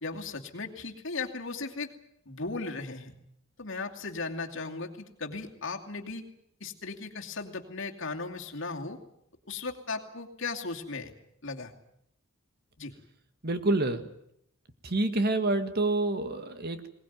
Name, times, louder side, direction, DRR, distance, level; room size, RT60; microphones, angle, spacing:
voice 1, 0.0-1.9 2.3-3.1 3.6-6.3 6.6-9.0 9.5-11.1 11.4-11.7 12.8-12.9, left 3 dB, 60° left, 2 dB, 2.6 m, -37 dB
voice 2, 13.4-14.1 14.8-16.9, right 2 dB, 50° right, 9 dB, 1.8 m, -27 dB
21.5 x 19.5 x 9.4 m, 0.74 s
head